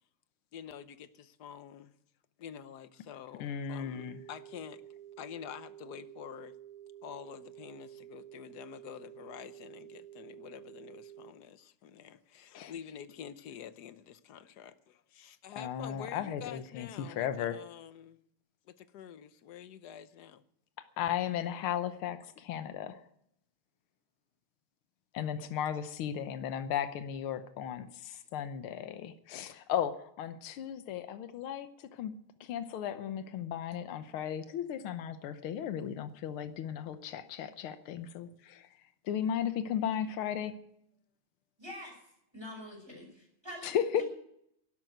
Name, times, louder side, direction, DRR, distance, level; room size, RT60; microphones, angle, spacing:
voice 1, 0.5-1.9 2.4-4.8 5.2-6.6 7.0-18.2 18.6-20.4 34.5-34.6 38.5-38.6, left 9 dB, 60° left, 1.2 m, -48 dB
voice 2, 3.4-4.2 12.5-12.7 15.6-17.6 21.0-23.0 25.1-32.1 32.4-38.7 39.1-40.5 43.6-44.0, left 9 dB, 80° left, 1.8 m, -35 dB
sound 1, 3.9-11.3, right 11 dB, 90° right, 1.8 m, -51 dB
voice 3, 41.6-42.0 42.3-44.0, left 1 dB, 10° right, 6.1 m, -46 dB
12.0 x 12.0 x 7.9 m
omnidirectional pair, 2.3 m